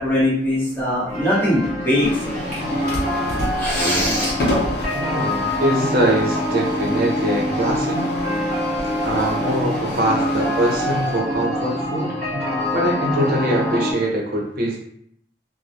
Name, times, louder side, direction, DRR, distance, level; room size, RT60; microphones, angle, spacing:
voice 1, 0.0-2.4 3.6-4.4, left 1 dB, 10° left, -7 dB, 0.8 m, -21 dB
sound 1, 1.1-13.9, left 1 dB, 40° right, 1.1 m, -25 dB
sound 2, 2.0-11.2, left 1 dB, 65° left, 0.6 m, -30 dB
voice 2, 5.0-8.0 9.0-12.1 12.7-14.8, right 1 dB, 55° right, -2 dB, 0.7 m, -22 dB
2.2 x 2.0 x 2.7 m, 0.68 s
head